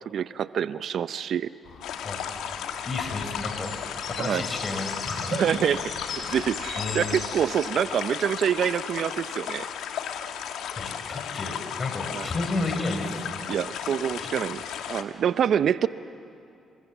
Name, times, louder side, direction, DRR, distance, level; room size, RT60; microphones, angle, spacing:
voice 1, 0.1-1.5 4.2-4.4 5.3-9.7 12.1-12.3 13.5-14.6 14.9-15.9, right 8 dB, 65° right, 14 dB, 0.6 m, -26 dB
sound 1, 1.6-7.3, left 5 dB, 70° left, 5.8 m, -39 dB
sound 2, 1.8-15.0, left 8 dB, 85° left, 1.5 m, -35 dB
voice 2, 2.8-3.8 4.1-5.5 6.8-7.2 10.8-13.3 14.2-14.3, left 2 dB, 30° left, 5 dB, 4.5 m, -32 dB
28.5 x 24.0 x 7.3 m, 2.6 s
cardioid pair, 90°, 0 cm